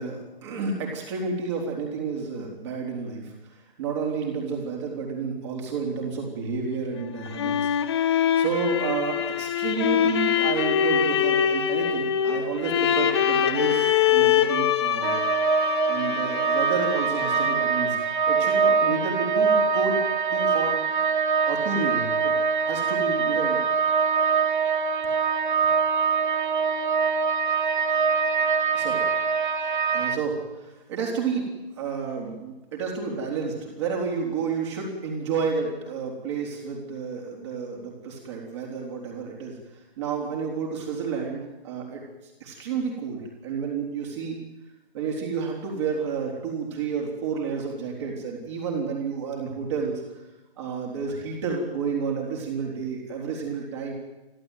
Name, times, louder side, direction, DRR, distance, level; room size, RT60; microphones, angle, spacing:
voice 1, 0.0-3.3 3.8-15.2 15.9-18.0 18.3-20.0 20.3-20.8 21.4-22.3 22.6-23.6 28.7-29.0 29.9-39.6 40.0-42.0 42.4-44.4 44.9-50.0 50.6-53.9, right 5 dB, 30° right, -1 dB, 4.0 m, -30 dB
sound 1, 7.0-17.8, left 9 dB, 25° left, 1.2 m, -24 dB
sound 2, 15.0-30.2, right 5 dB, 50° right, 1.6 m, -23 dB
29.5 x 11.5 x 9.3 m, 1.0 s
hypercardioid pair, 160°, 31 cm